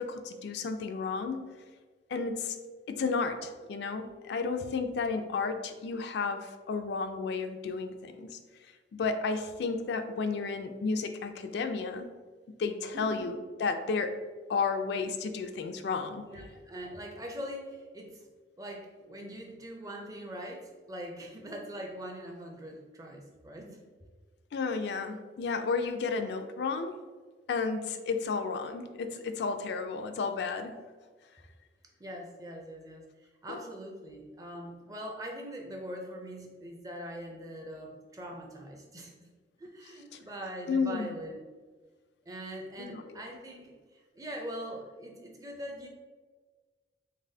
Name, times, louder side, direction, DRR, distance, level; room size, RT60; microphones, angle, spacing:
voice 1, 0.0-1.5 2.1-2.6 2.9-8.4 8.9-12.1 12.6-14.2 14.5-16.2 24.5-27.0 27.5-30.8 33.5-33.6 40.1-40.2 40.7-41.2 42.8-43.0, left 4 dB, 65° left, 7 dB, 0.3 m, -32 dB
voice 2, 12.9-13.3 16.2-18.2 18.6-23.8 32.0-33.0 33.4-39.1 39.6-41.4 42.3-45.9, equal, 20° right, 1 dB, 0.5 m, -42 dB
4.0 x 3.3 x 2.7 m, 1.4 s
head